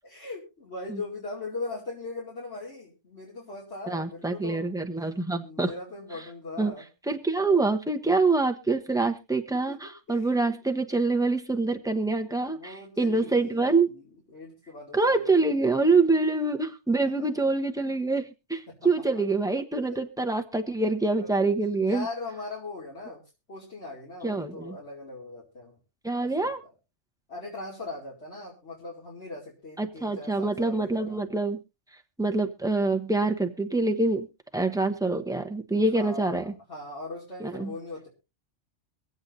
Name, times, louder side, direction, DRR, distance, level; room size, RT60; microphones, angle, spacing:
voice 1, 0.0-4.7 5.4-6.8 9.7-9.8 10.1-10.3 11.9-14.0 14.3-15.4 17.0-17.6 18.7-18.8 21.1-23.2 23.5-25.8 26.2-26.5 27.3-31.2 35.8-38.1, left 3 dB, 65° left, -5 dB, 2.8 m, -40 dB
voice 2, 3.9-5.7 6.6-6.7 7.1-13.9 14.9-22.1 24.2-24.8 26.0-26.6 29.8-31.6 32.2-34.3 34.5-36.5 37.4-37.7, right 3 dB, 5° right, 4 dB, 0.8 m, -25 dB
24.0 x 8.0 x 2.6 m, 0.28 s
omnidirectional pair, 1.2 m